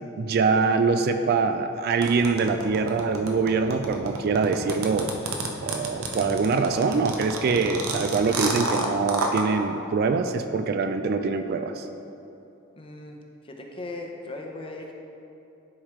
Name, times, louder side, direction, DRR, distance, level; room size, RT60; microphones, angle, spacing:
voice 1, 0.2-5.1 5.6-11.9, right 4 dB, 45° right, 8 dB, 0.3 m, -24 dB
sound 1, 2.0-9.4, right 3 dB, 85° right, 0.7 m, -29 dB
voice 2, 12.8-13.2 13.4-15.0, left 2 dB, 25° left, 1 dB, 0.7 m, -38 dB
11.0 x 4.9 x 3.1 m, 2.8 s
head